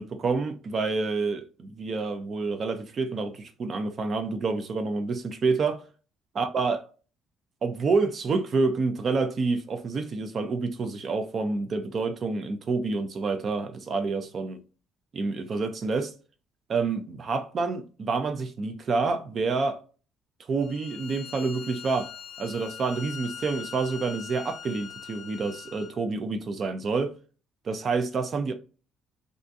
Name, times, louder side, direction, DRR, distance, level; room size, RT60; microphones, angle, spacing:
voice 1, 0.0-5.8 6.4-6.8 7.6-14.6 15.1-16.1 16.7-19.8 20.5-22.1 22.4-27.1 27.6-28.5, right 4 dB, 40° right, 0.4 m, -28 dB
Bowed string instrument, 20.6-26.0, left 8 dB, 45° left, 0.6 m, -42 dB
3.5 x 2.5 x 2.6 m
cardioid pair, 120°, 0 cm